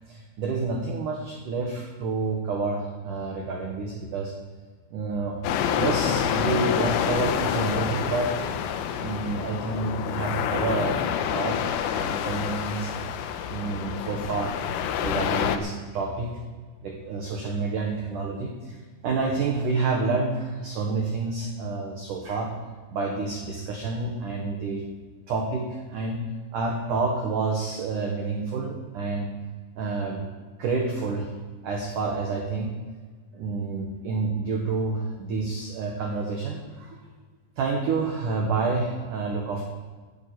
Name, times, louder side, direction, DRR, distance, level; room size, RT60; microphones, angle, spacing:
voice 1, 0.1-4.3 4.9-5.4 5.7-8.3 9.0-11.6 11.9-12.9 13.5-14.5 15.0-16.3 16.8-18.8 19.0-22.5 22.9-24.8 25.3-26.2 26.5-29.3 29.8-30.3 30.6-31.3 31.6-32.7 33.3-37.0 37.6-39.7, right 4 dB, 85° right, 1 dB, 1.8 m, -29 dB
sound 1, 5.4-15.6, left 9 dB, 85° left, 3.3 m, -27 dB
11.5 x 8.9 x 8.6 m, 1.4 s
omnidirectional pair, 5.8 m